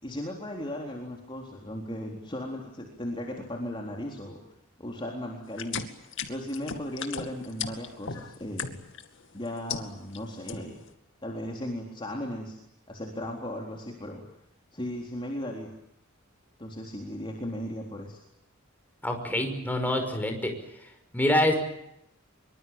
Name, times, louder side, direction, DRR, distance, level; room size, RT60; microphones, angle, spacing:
voice 1, 0.0-4.4 4.8-5.8 6.3-8.8 9.3-10.7 11.2-12.6 12.9-14.2 14.7-15.7 16.6-18.2, left 1 dB, 25° left, 0 dB, 3.9 m, -36 dB
sound 1, 5.5-9.1 9.5-10.2 10.5-10.9, left 6 dB, 60° left, 2.3 m, -36 dB
voice 2, 19.0-20.5 21.1-21.6, left 1 dB, 10° left, 4 dB, 5.7 m, -25 dB
24.5 x 24.0 x 8.9 m, 0.79 s
head